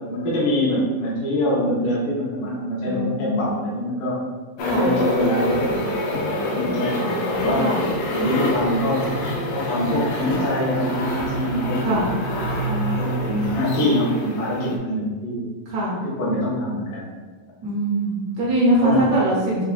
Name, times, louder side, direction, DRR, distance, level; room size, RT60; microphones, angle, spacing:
voice 1, 0.0-4.2 4.6-7.7 8.1-9.1 9.5-12.0 12.6-15.5 15.9-17.1 18.3-18.5 18.8-19.1, left 1 dB, 65° left, -6 dB, 1.5 m, -24 dB
voice 2, 2.8-3.6 4.7-4.9 6.5-7.8 11.8-12.1 15.7-16.0 17.6-19.6, right 1 dB, 65° right, -5 dB, 1.9 m, -23 dB
sound 1, 4.6-14.8, equal, 80° left, 2.3 m, -26 dB
5.5 x 3.6 x 2.4 m, 1.4 s
omnidirectional pair, 4.1 m